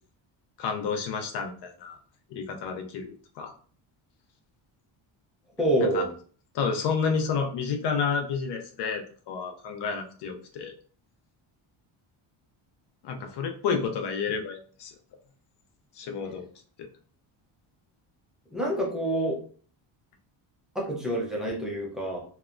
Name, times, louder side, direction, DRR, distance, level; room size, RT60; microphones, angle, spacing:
voice 1, 0.6-2.0 2.3-3.5 5.9-6.0 6.5-10.7 13.0-14.9 16.0-16.5 16.8-16.9, left 5 dB, 60° left, 5 dB, 0.5 m, -30 dB
voice 2, 5.6-6.1 18.5-19.4 20.8-22.2, right 1 dB, ahead, -3 dB, 0.3 m, -27 dB
2.8 x 2.1 x 2.4 m, 0.43 s
cardioid pair, 170°, 49 cm